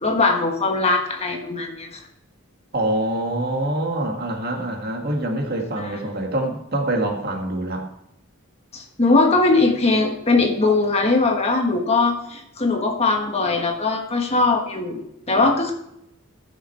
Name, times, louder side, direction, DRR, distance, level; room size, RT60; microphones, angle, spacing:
voice 1, 0.0-2.0 5.8-6.0 8.7-15.7, left 3 dB, 30° left, 3 dB, 1.3 m, -20 dB
voice 2, 2.7-7.9, right 1 dB, 45° right, 2 dB, 1.8 m, -25 dB
14.0 x 6.3 x 4.3 m, 0.78 s
head